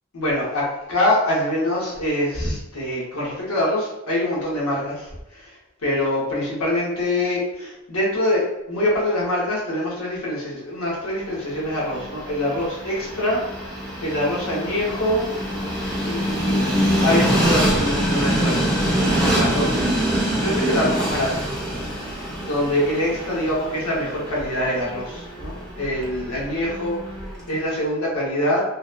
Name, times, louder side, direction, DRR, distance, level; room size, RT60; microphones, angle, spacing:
voice 1, 0.1-5.5 5.8-13.4 13.7-15.3 16.0-20.0 20.4-21.3 22.4-27.0 27.5-28.6, left 1 dB, 85° left, -4 dB, 0.7 m, -24 dB
Train, 11.5-27.5, equal, 5° left, 0.6 m, -25 dB
2.8 x 2.0 x 2.2 m, 0.94 s
head